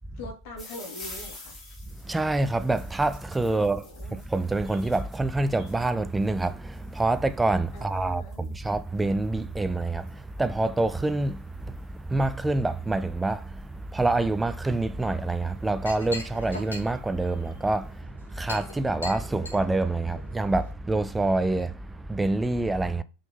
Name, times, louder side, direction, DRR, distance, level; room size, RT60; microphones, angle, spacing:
voice 1, 0.1-1.5 3.5-4.2 7.7-8.6, left 1 dB, 45° left, 3.3 m, -43 dB
sound 1, 0.6-13.8 14.6-15.0 15.6-15.7 15.9-16.0 16.3-17.7, left 2 dB, 25° left, 3.2 m, -50 dB
voice 2, 2.0-3.8 4.1-23.0, right 2 dB, 10° right, 0.6 m, -27 dB
Chink clink, 15.4-20.7, left 2 dB, 75° left, 3.1 m, -42 dB
6.1 x 5.7 x 5.3 m
figure-of-eight pair, 90°, 0 cm